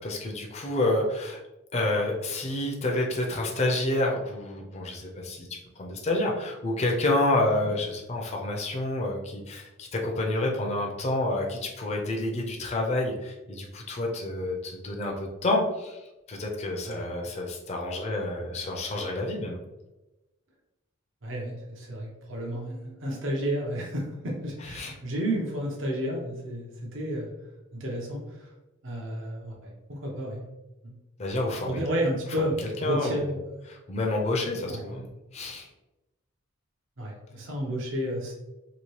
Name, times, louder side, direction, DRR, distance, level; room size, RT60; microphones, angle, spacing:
voice 1, 0.0-1.4 1.7-5.5 5.8-19.6 24.6-24.9 31.2-31.8 32.6-33.2 33.7-35.7, left 2 dB, 30° left, 0 dB, 0.4 m, -29 dB
voice 2, 21.2-27.3 27.7-28.5 28.8-30.4 30.8-30.9 31.6-33.4 34.7-34.8 37.0-38.3, right 1 dB, 60° right, -2 dB, 0.7 m, -31 dB
2.9 x 2.7 x 3.0 m, 1.0 s
head